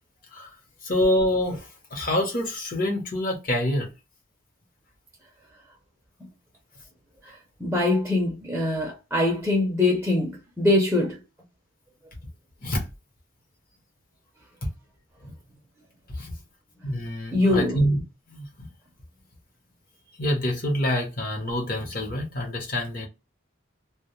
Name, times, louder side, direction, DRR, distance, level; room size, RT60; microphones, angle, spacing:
voice 1, 0.8-3.9 12.6-12.8 14.6-14.7 15.2-15.3 16.1-16.3 16.8-18.0 18.3-18.7 20.2-23.1, left 1 dB, 45° left, 0.9 m, -26 dB
voice 2, 7.2-11.2 17.3-17.8, left 2 dB, 5° right, 0.5 m, -23 dB
2.2 x 2.1 x 2.9 m
head